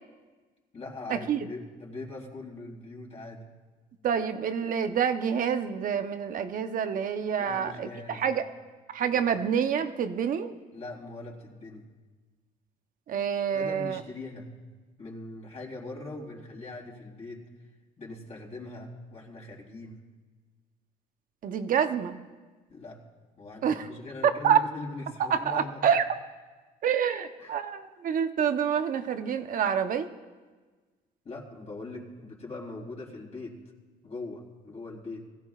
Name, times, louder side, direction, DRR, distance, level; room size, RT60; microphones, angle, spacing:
voice 1, 0.7-3.5 7.4-8.4 9.1-9.2 10.7-11.9 13.5-14.5 15.0-17.4 18.0-20.0 22.7-23.0 23.4-25.9 27.4-27.6 31.2-33.5 34.0-35.2, left 2 dB, 40° left, -2 dB, 3.7 m, -41 dB
voice 2, 4.0-8.4 8.9-10.5 13.1-14.0 21.4-22.3 23.6-23.9 24.4-24.6 25.2-26.2 26.8-30.1, right 8 dB, 55° right, 8 dB, 0.9 m, -27 dB
21.5 x 15.0 x 2.5 m, 1.3 s
cardioid pair, 110°, 17 cm